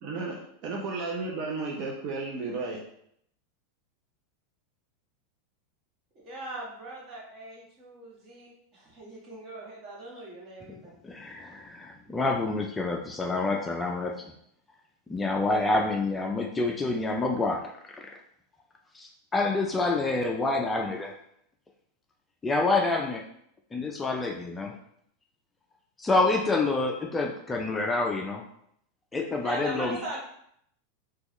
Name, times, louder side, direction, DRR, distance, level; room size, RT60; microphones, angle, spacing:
voice 1, 0.0-2.8, right 3 dB, 50° right, -1 dB, 0.6 m, -33 dB
voice 2, 6.2-10.9 29.4-30.2, right 2 dB, 35° right, -4 dB, 1.4 m, -40 dB
voice 3, 11.0-14.3 15.1-18.0 18.9-21.2 22.4-23.2 23.7-24.7 26.0-28.4 29.1-30.0, left 3 dB, 15° left, 1 dB, 0.3 m, -27 dB
3.5 x 2.3 x 3.0 m, 0.71 s
hypercardioid pair, 120°, 0 cm